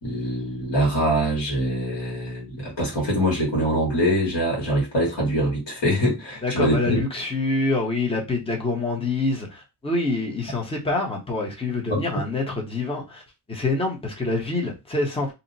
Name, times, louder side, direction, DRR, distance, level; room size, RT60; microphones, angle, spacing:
voice 1, 0.0-7.0 11.9-12.0, equal, 70° left, 1.5 m, -23 dB
voice 2, 6.4-15.3, left 3 dB, 10° left, 0.7 m, -26 dB
2.7 x 2.0 x 3.9 m
wide cardioid pair, 155°, 45 cm